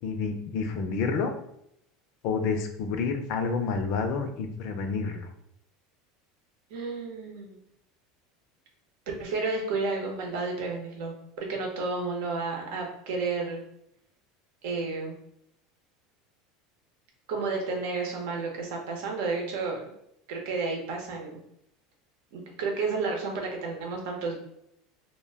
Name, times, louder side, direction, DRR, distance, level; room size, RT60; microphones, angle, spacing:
voice 1, 0.0-1.3 2.2-5.3, left 4 dB, 60° left, 6 dB, 0.4 m, -29 dB
voice 2, 6.7-7.6 9.2-13.6 14.6-15.1 17.3-19.8 20.3-21.4 22.3-24.4, right 3 dB, 75° right, 0 dB, 0.8 m, -31 dB
2.2 x 2.1 x 3.4 m, 0.75 s
supercardioid pair, 120°, 0 cm